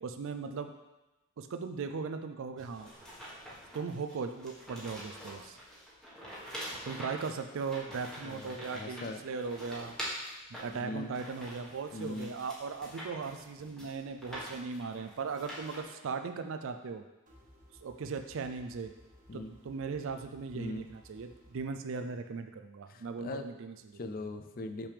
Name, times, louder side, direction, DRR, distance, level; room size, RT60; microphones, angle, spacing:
voice 1, 0.0-0.7 1.4-2.9 3.7-5.6 6.8-9.9 10.6-17.0 17.8-18.9 19.3-24.0, right 5 dB, 60° right, 7 dB, 0.4 m, -38 dB
sound 1, 2.6-15.8, equal, 5° left, 1.3 m, -45 dB
voice 2, 8.2-9.2 10.7-11.1 11.9-12.3 13.8-13.9 19.3-19.5 20.5-20.8 22.9-23.4 24.0-24.9, left 2 dB, 40° left, 8 dB, 0.4 m, -40 dB
sound 2, 17.3-21.6, equal, 35° right, 1.3 m, -59 dB
6.6 x 5.9 x 3.3 m, 1.0 s
head